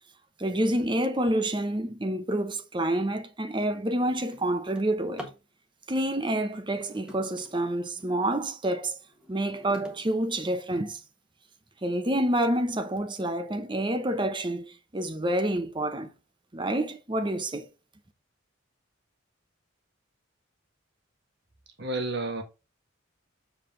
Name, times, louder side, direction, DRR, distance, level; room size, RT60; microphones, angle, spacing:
voice 1, 0.4-5.3 5.9-9.0 9.3-11.0 11.8-16.1 16.5-17.7, right 1 dB, 25° right, 0.8 m, -28 dB
Drawer open or close, 3.0-3.1 3.5-5.5 6.6-8.2 8.7-11.1 11.8-11.9 12.4-12.5 12.8-13.2, left 1 dB, 5° right, 1.3 m, -48 dB
voice 2, 21.8-22.4, right 2 dB, 55° right, 1.7 m, -30 dB
7.3 x 4.9 x 3.8 m
head